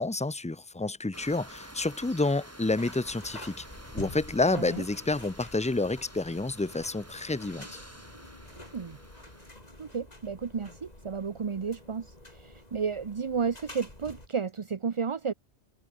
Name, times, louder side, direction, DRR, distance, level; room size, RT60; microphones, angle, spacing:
voice 1, 0.0-3.6 3.9-7.8, left 2 dB, 10° left, 0.3 m, -29 dB
sound 1, 1.1-9.5, equal, 10° right, 4.7 m, -49 dB
sound 2, 2.8-14.3, left 1 dB, 35° left, 4.8 m, -48 dB
voice 2, 4.5-4.8 8.6-9.0 9.8-15.3, right 6 dB, 35° right, 0.6 m, -33 dB
omnidirectional pair, 1.2 m